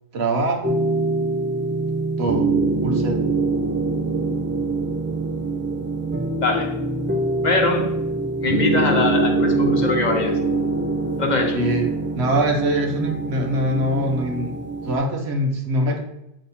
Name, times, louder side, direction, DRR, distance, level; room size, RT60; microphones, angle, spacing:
voice 1, 0.1-0.8 2.2-2.4 2.8-3.2 11.5-11.9 12.2-14.5 14.8-16.0, right 1 dB, 85° right, 1 dB, 1.2 m, -23 dB
sound 1, 0.6-15.0, right 3 dB, 20° right, 0.3 m, -24 dB
voice 2, 6.4-6.7 7.4-7.9 8.4-10.3 11.2-11.6, left 3 dB, 45° left, 2 dB, 1.1 m, -22 dB
8.0 x 3.3 x 4.2 m, 0.87 s
omnidirectional pair, 1.1 m